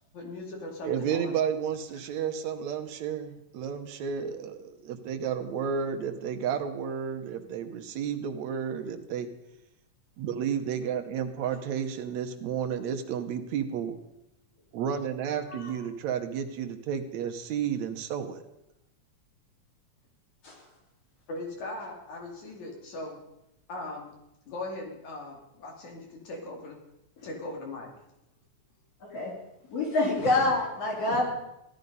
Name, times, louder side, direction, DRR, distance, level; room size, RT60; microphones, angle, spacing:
voice 1, 0.1-1.4 11.4-11.6 15.5-15.8 21.3-23.2 23.7-24.1 24.5-26.8 27.2-27.9, left 2 dB, 75° left, 0 dB, 4.1 m, -39 dB
voice 2, 0.8-9.3 10.2-14.0 14.7-18.4, right 7 dB, 75° right, 7 dB, 2.2 m, -32 dB
voice 3, 29.0-29.3 29.7-31.3, left 2 dB, 55° left, -2 dB, 4.8 m, -26 dB
16.0 x 12.0 x 5.4 m, 0.86 s
omnidirectional pair, 3.4 m